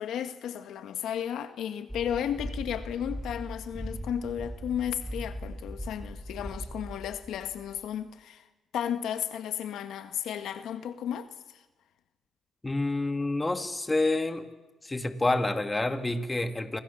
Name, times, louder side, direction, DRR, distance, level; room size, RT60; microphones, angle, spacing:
voice 1, 0.0-8.5 8.7-11.6, left 9 dB, 80° left, 1.6 m, -34 dB
sound 1, 1.9-8.0, equal, 5° right, 3.5 m, -39 dB
voice 2, 12.6-14.5 14.8-16.8, left 2 dB, 20° left, 2.2 m, -28 dB
27.5 x 26.0 x 7.1 m
cardioid pair, 90°, 0 cm